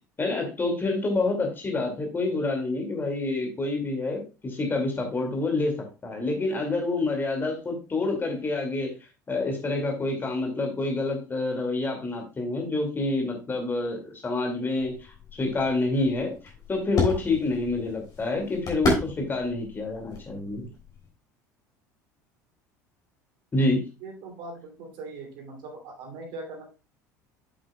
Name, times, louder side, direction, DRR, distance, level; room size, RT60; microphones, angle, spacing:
voice 1, 0.2-8.9 9.3-16.3 16.7-20.7 23.5-23.8, left 2 dB, 20° left, 3 dB, 2.3 m, -27 dB
sound 1, 14.8-21.1, left 2 dB, 40° left, 3.7 m, -32 dB
voice 2, 24.0-26.6, right 3 dB, 50° right, 1 dB, 2.7 m, -40 dB
8.0 x 7.8 x 2.3 m, 0.30 s
figure-of-eight pair, 65°, 10 cm